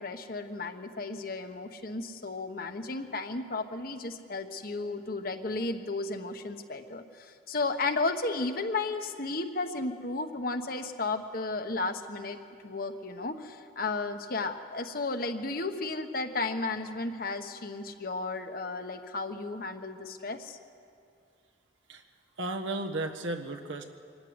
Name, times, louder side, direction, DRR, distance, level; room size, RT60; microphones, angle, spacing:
voice 1, 0.0-12.4 12.6-20.6, left 3 dB, 50° left, 7 dB, 1.2 m, -34 dB
voice 2, 22.4-23.8, right 2 dB, 75° right, 4 dB, 1.6 m, -34 dB
24.0 x 13.0 x 9.7 m, 2.5 s
head